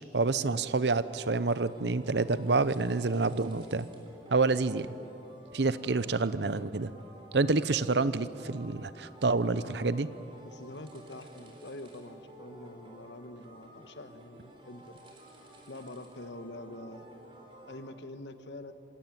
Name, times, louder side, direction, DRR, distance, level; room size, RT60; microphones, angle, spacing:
voice 1, 0.1-3.9 4.3-4.9 5.5-6.9 7.3-10.1, right 3 dB, 80° right, 15 dB, 0.8 m, -28 dB
sound 1, 0.9-17.9, right 1 dB, 30° right, 3.8 m, -53 dB
voice 2, 9.4-9.9 10.4-15.1 15.7-17.1 17.7-18.7, left 1 dB, 85° left, 9 dB, 1.4 m, -45 dB
26.0 x 17.5 x 9.2 m, 3.0 s
head